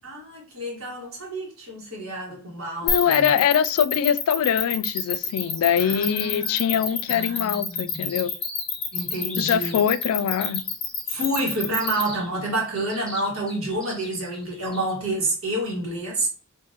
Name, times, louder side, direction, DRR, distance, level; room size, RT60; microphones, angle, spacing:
voice 1, 0.0-3.2 5.8-6.6 7.1-8.1 8.9-9.8 11.1-16.3, right 1 dB, 75° right, 1.6 m, -29 dB
voice 2, 2.8-8.3 9.4-10.6, left 8 dB, 90° left, 0.3 m, -23 dB
sound 1, 2.9-12.0, left 8 dB, 30° left, 0.6 m, -27 dB
sound 2, 4.9-14.9, equal, 5° left, 1.0 m, -43 dB
3.7 x 2.7 x 2.8 m
head